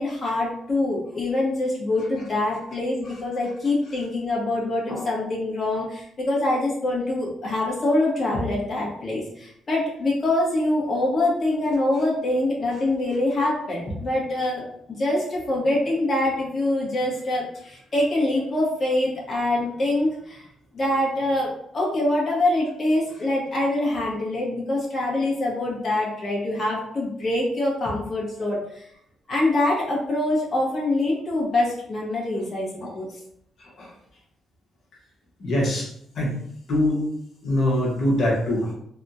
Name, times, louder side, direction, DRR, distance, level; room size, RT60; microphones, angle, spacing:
voice 1, 0.0-14.6 15.0-20.4 20.7-28.6 29.3-32.7 32.9-33.1, left 1 dB, 40° left, -4 dB, 1.5 m, -24 dB
voice 2, 35.4-35.9 36.1-36.4 36.7-37.0 37.4-38.7, left 1 dB, 60° left, -3 dB, 1.3 m, -23 dB
3.5 x 2.4 x 2.8 m, 0.70 s
cardioid pair, 90°, 0 cm